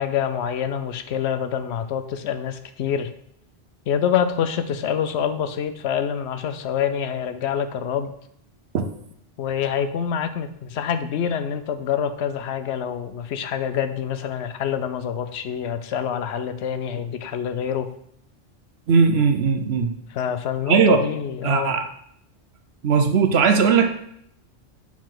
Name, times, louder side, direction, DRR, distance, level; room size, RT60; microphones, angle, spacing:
voice 1, 0.0-3.1 3.9-8.1 9.4-17.9 20.1-21.8, left 8 dB, 75° left, 10 dB, 0.8 m, -26 dB
voice 2, 18.9-19.9 20.7-21.0 21.4-21.8 22.8-23.9, right 5 dB, 70° right, 6 dB, 1.0 m, -18 dB
7.2 x 4.6 x 3.8 m, 0.71 s
omnidirectional pair, 1.2 m